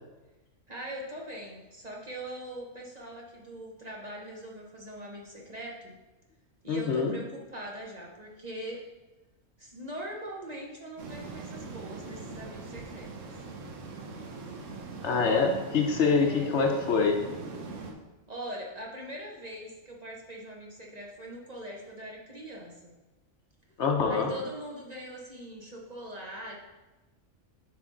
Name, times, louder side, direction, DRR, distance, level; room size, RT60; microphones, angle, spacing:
voice 1, 0.7-6.0 6.6-8.8 9.6-13.4 16.2-16.5 18.3-22.9 24.1-26.6, right 1 dB, 35° right, -2 dB, 0.9 m, -42 dB
voice 2, 6.7-7.1 15.0-17.2 23.8-24.3, left 4 dB, 65° left, 2 dB, 1.0 m, -25 dB
sound 1, 11.0-17.9, right 3 dB, 75° right, 1.2 m, -42 dB
9.2 x 3.7 x 3.8 m, 1.1 s
omnidirectional pair, 1.3 m